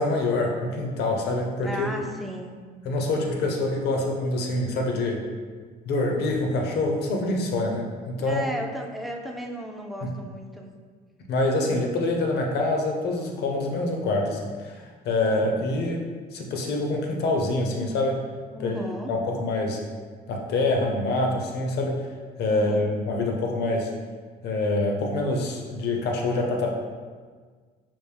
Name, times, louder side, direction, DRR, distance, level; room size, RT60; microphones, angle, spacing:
voice 1, 0.0-1.9 2.8-5.2 5.9-8.4 10.0-10.1 11.3-16.0 16.3-18.2 18.6-18.8 19.1-19.8 20.3-22.0 22.4-23.9 24.4-26.7, left 2 dB, 65° left, 1 dB, 0.7 m, -25 dB
voice 2, 1.6-2.5 8.2-10.7 18.5-19.1 22.5-22.9, equal, ahead, 1 dB, 0.3 m, -35 dB
5.3 x 2.6 x 3.3 m, 1.5 s
cardioid pair, 150°, 19 cm